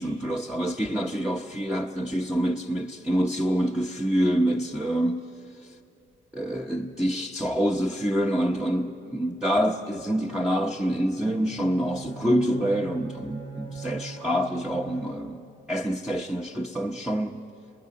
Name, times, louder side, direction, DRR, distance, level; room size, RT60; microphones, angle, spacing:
voice 1, 0.0-5.3 5.6-5.7 6.3-17.4, equal, 5° right, 0.9 m, -26 dB
Bowed string instrument, 11.4-15.6, right 5 dB, 65° right, 3.7 m, -41 dB
26.5 x 20.5 x 5.3 m
cardioid pair, 90°, 20 cm